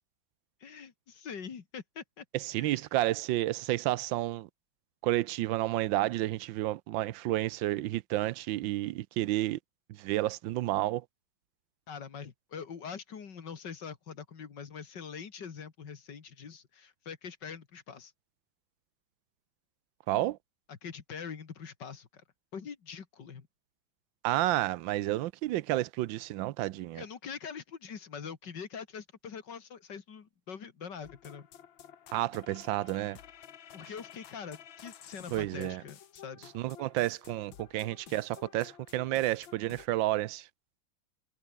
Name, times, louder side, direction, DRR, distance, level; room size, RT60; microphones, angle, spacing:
voice 1, 0.6-2.3 2.6-2.7 11.9-18.1 20.7-22.2 22.5-23.5 26.9-31.5 33.7-36.5, left 6 dB, 65° left, 2.5 m, -44 dB
voice 2, 2.3-4.5 5.0-9.6 9.9-11.0 20.1-20.4 24.2-27.0 32.1-33.2 35.3-35.8 36.5-40.5, right 15 dB, 85° right, 1.3 m, -31 dB
sound 1, 31.0-39.9, left 9 dB, 85° left, 2.1 m, -52 dB
omnidirectional pair, 2.1 m